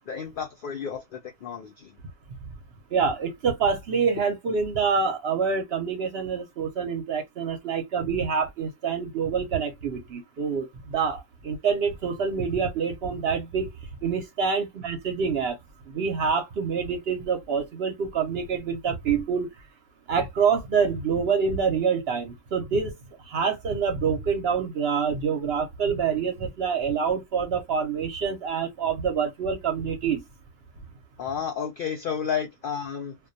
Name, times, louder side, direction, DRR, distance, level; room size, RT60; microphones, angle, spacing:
voice 1, 0.1-1.9 31.2-33.2, left 7 dB, 75° left, 0.4 m, -32 dB
voice 2, 2.9-13.7 14.0-15.5 15.9-19.5 20.1-22.9 23.3-30.2, right 6 dB, 60° right, 0.7 m, -26 dB
2.2 x 2.2 x 2.5 m
omnidirectional pair, 1.4 m